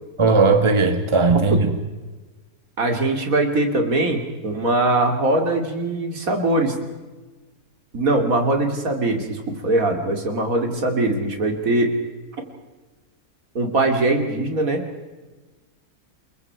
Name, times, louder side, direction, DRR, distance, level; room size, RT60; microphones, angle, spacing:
voice 1, 0.2-1.6, right 4 dB, 20° right, 8 dB, 1.5 m, -17 dB
voice 2, 2.8-6.8 7.9-11.9 13.5-14.8, right 2 dB, 60° right, 4 dB, 3.2 m, -21 dB
29.0 x 22.5 x 4.8 m, 1.2 s
omnidirectional pair, 1.6 m